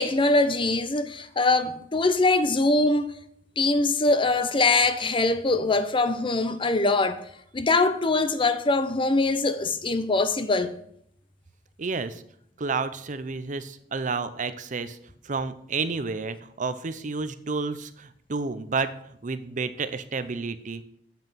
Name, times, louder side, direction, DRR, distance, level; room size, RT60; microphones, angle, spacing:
voice 1, 0.0-3.1 3.6-7.2 7.5-10.7, left 2 dB, 30° left, 0.7 m, -23 dB
voice 2, 11.8-12.2 12.6-15.0 15.2-20.8, right 4 dB, 45° right, 0.6 m, -30 dB
8.1 x 7.3 x 5.7 m
head